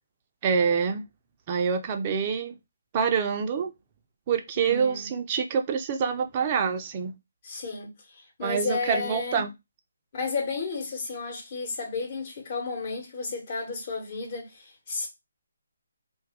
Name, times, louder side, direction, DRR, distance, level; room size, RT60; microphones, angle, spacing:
voice 1, 0.4-1.0 1.5-2.6 2.9-3.7 4.3-7.1 8.4-9.5, right 6 dB, 30° right, 0.5 m, -26 dB
voice 2, 4.6-5.1 7.4-9.5 10.1-15.1, left 4 dB, 40° left, 1.1 m, -33 dB
2.6 x 2.3 x 3.6 m
figure-of-eight pair, 145°, 0 cm